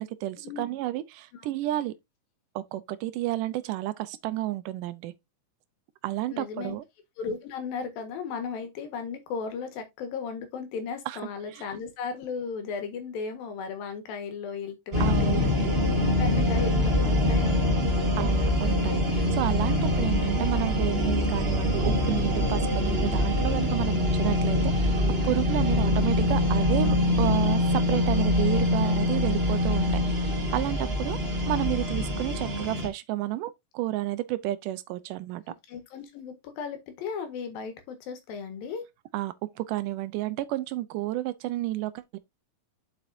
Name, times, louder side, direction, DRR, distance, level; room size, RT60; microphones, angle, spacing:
voice 1, 0.0-1.9 2.6-5.1 6.0-6.8 11.1-11.2 11.5-11.6 15.0-15.7 18.2-29.9 30.2-31.2 31.5-35.4 39.1-42.2, right 15 dB, 80° right, 2.1 m, -31 dB
voice 2, 6.3-6.8 7.2-15.4 16.2-17.8 35.7-38.9, left 5 dB, 80° left, 3.3 m, -35 dB
sound 1, 14.9-32.9, left 1 dB, 55° right, 0.6 m, -24 dB
7.4 x 6.8 x 2.6 m
omnidirectional pair, 4.1 m